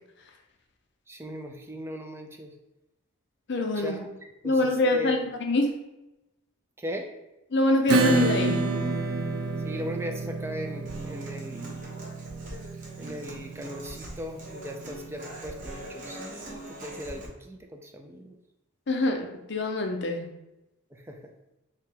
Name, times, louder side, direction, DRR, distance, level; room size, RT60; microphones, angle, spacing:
voice 1, 1.1-2.5 3.8-4.1 4.4-5.3 6.8-7.1 9.6-11.8 13.0-18.4 20.9-21.3, equal, 10° right, 3 dB, 0.4 m, -38 dB
voice 2, 3.5-4.0 4.4-5.7 7.5-8.7 18.9-20.3, left 2 dB, 55° left, 3 dB, 0.6 m, -25 dB
Acoustic guitar / Strum, 7.9-15.1, right 2 dB, 85° right, 0.4 m, -29 dB
Human voice / Acoustic guitar, 10.8-17.3, right 1 dB, 40° right, 0.9 m, -42 dB
3.3 x 2.9 x 4.5 m, 0.94 s
head